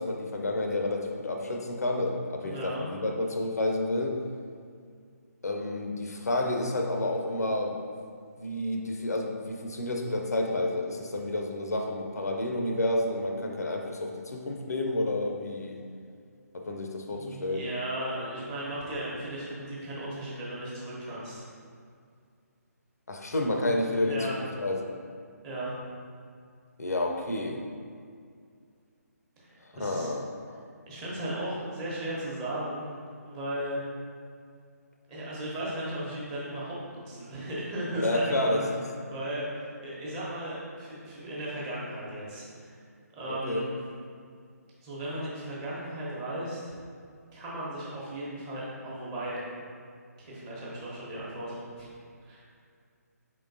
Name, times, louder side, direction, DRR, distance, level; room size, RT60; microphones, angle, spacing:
voice 1, 0.0-4.2 5.4-7.8 8.4-15.8 16.5-17.7 23.1-24.2 24.6-24.9 26.8-27.6 29.8-30.6 37.9-38.6 43.3-43.6, left 1 dB, 70° left, 2 dB, 0.5 m, -30 dB
voice 2, 2.4-2.8 17.1-21.5 23.5-23.6 24.1-24.3 25.4-25.7 29.4-30.1 30.9-32.9 33.2-33.8 35.1-38.6 39.1-42.8 43.1-43.8 44.8-46.7 47.3-49.4 50.2-51.9 52.2-52.4, right 1 dB, 20° right, -7 dB, 0.9 m, -36 dB
4.5 x 3.7 x 2.6 m, 2.2 s
figure-of-eight pair, 145°, 9 cm